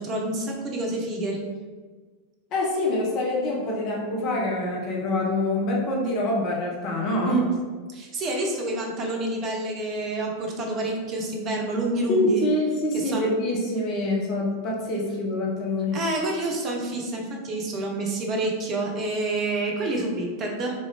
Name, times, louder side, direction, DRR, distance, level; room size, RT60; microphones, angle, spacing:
voice 1, 0.0-1.4 7.2-7.4 7.9-12.4 12.9-13.3 15.9-20.7, right 2 dB, 30° right, 0 dB, 0.8 m, -28 dB
voice 2, 2.5-7.4 12.1-16.0, left 1 dB, 35° left, -2 dB, 0.7 m, -25 dB
3.8 x 2.5 x 3.4 m, 1.4 s
figure-of-eight pair, 90°, 0 cm